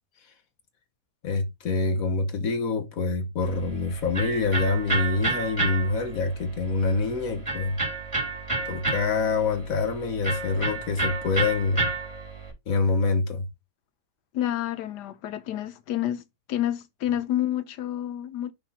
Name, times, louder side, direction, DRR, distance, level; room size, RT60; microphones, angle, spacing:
voice 1, 1.2-7.8 8.6-11.9 12.7-13.4, left 4 dB, 60° left, 1.4 m, -26 dB
Electric guitar, 3.4-12.5, right 3 dB, 15° right, 3.7 m, -31 dB
voice 2, 14.3-16.2 16.5-18.5, left 12 dB, 85° left, 1.4 m, -29 dB
6.1 x 3.7 x 5.7 m
omnidirectional pair, 1.8 m